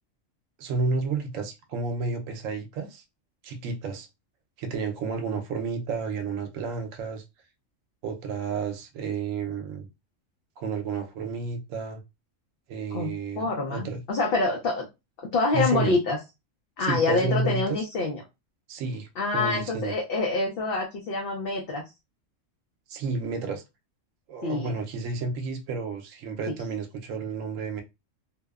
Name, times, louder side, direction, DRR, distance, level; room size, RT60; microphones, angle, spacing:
voice 1, 0.6-3.0 3.4-4.1 4.6-7.2 8.0-9.9 10.6-12.0 12.7-14.0 15.5-16.0 16.8-17.8 18.7-19.1 19.3-19.9 22.9-23.6 24.3-27.8, right 4 dB, 80° right, 1.0 m, -31 dB
voice 2, 12.9-14.9 15.3-16.2 16.8-18.2 19.2-21.8 24.4-24.7, left 3 dB, 60° left, 0.7 m, -26 dB
2.7 x 2.0 x 2.3 m
omnidirectional pair, 1.3 m